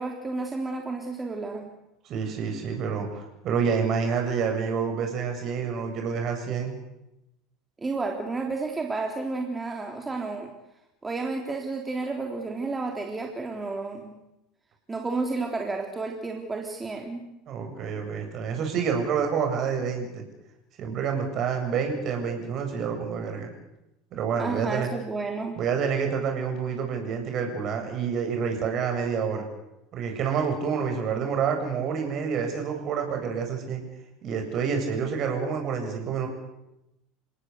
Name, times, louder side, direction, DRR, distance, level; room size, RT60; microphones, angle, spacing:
voice 1, 0.0-1.6 7.8-10.5 11.0-14.1 14.9-17.2 24.4-25.6, right 3 dB, 15° right, 2 dB, 3.6 m, -31 dB
voice 2, 2.0-6.7 17.5-20.2 20.8-23.5 24.1-24.9 25.5-29.5 29.9-33.8 34.2-36.3, right 6 dB, 45° right, 4 dB, 7.7 m, -28 dB
29.0 x 18.0 x 8.2 m, 0.91 s
figure-of-eight pair, 70°, 0 cm